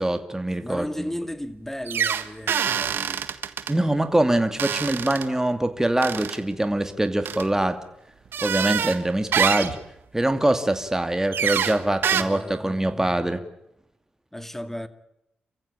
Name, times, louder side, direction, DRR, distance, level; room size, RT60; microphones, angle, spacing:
voice 1, 0.0-1.1 3.7-7.8 8.4-9.8 10.1-13.4, right 1 dB, 15° right, 2.5 m, -23 dB
voice 2, 0.6-3.3 12.1-13.3 14.3-14.9, equal, 10° left, 2.2 m, -35 dB
sound 1, 1.9-3.7 4.6-5.3 6.0-6.4 7.2-7.4 8.3-9.0 9.3-9.8 11.3-11.8 12.0-12.2, right 8 dB, 80° right, 1.5 m, -25 dB
28.5 x 15.5 x 9.0 m
cardioid pair, 60°, 4 cm